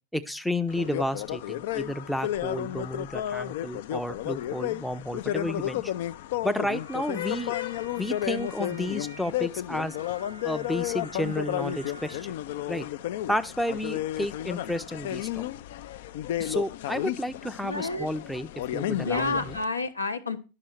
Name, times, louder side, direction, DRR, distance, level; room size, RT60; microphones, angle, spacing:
voice 1, 0.1-5.9 6.4-7.5 8.0-10.0 10.4-12.3 12.7-12.9 13.3-15.4 16.4-19.6, left 1 dB, ahead, 8 dB, 0.5 m, -31 dB
sound 1, 0.7-19.6, left 13 dB, 55° left, 0.4 m, -32 dB
sound 2, 6.7-12.2, equal, 90° right, 1.0 m, -47 dB
voice 2, 17.6-18.1 18.9-20.4, left 3 dB, 80° left, 9 dB, 0.8 m, -29 dB
11.0 x 6.1 x 4.4 m, 0.31 s
figure-of-eight pair, 90°, 0 cm